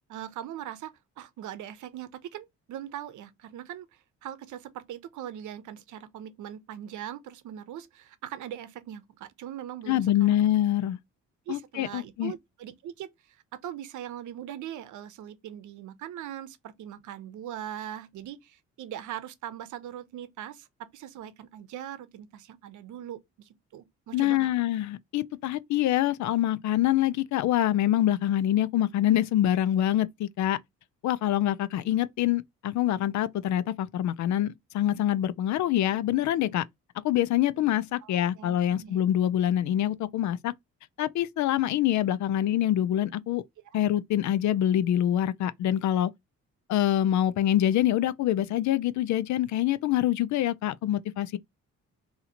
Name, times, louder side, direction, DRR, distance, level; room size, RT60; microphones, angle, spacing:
voice 1, 0.1-10.4 11.5-20.7 20.9-24.5 38.0-39.0 43.7-43.8, right 11 dB, 75° right, 0.8 m, -41 dB
voice 2, 9.9-11.0 11.5-12.3 24.1-30.6 31.0-36.6 37.0-40.5 41.0-43.4 43.7-46.1 46.7-51.4, left 12 dB, 70° left, 0.5 m, -25 dB
4.0 x 2.8 x 2.8 m
cardioid pair, 90°, 30 cm